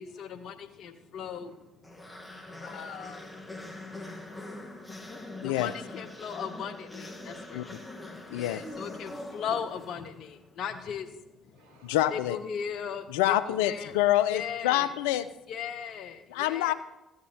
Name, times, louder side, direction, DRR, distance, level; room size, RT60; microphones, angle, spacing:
voice 1, 0.0-1.5 2.6-3.3 5.4-7.7 8.3-11.1 12.1-13.9 14.3-14.9 15.5-16.7, left 7 dB, 60° left, 10 dB, 0.8 m, -37 dB
sound 1, 1.8-10.3, left 2 dB, 15° left, 1.6 m, -43 dB
voice 2, 2.0-2.7 3.7-4.7 8.3-8.4 11.5-12.0, right 3 dB, 80° right, 2 dB, 1.7 m, -61 dB
voice 3, 8.3-8.6 11.8-12.4 13.1-15.3 16.3-16.7, left 14 dB, 80° left, 14 dB, 0.4 m, -26 dB
13.5 x 7.6 x 2.9 m, 0.97 s
hypercardioid pair, 50°, 0 cm